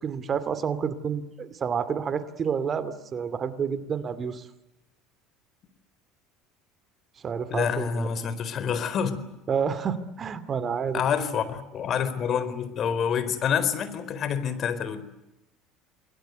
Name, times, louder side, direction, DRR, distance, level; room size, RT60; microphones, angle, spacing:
voice 1, 0.0-4.5 7.2-8.1 9.5-11.0, right 6 dB, 40° right, 14 dB, 2.5 m, -29 dB
voice 2, 7.5-9.2 10.9-15.0, left 7 dB, 45° left, 13 dB, 4.2 m, -27 dB
29.0 x 21.0 x 8.1 m, 0.92 s
hypercardioid pair, 80°, 0 cm